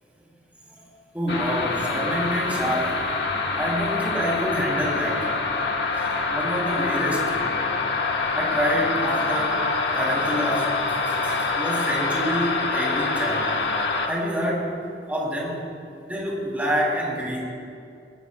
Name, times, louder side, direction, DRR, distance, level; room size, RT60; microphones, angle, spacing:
voice 1, 0.7-3.0 3.6-5.3 5.9-7.6 8.3-13.6 14.1-14.7 15.1-15.7 16.1-17.4, equal, 10° right, -4 dB, 3.1 m, -27 dB
sound 1, 1.3-14.1, left 3 dB, 70° left, 1.3 m, -25 dB
19.5 x 16.0 x 2.3 m, 2.4 s
head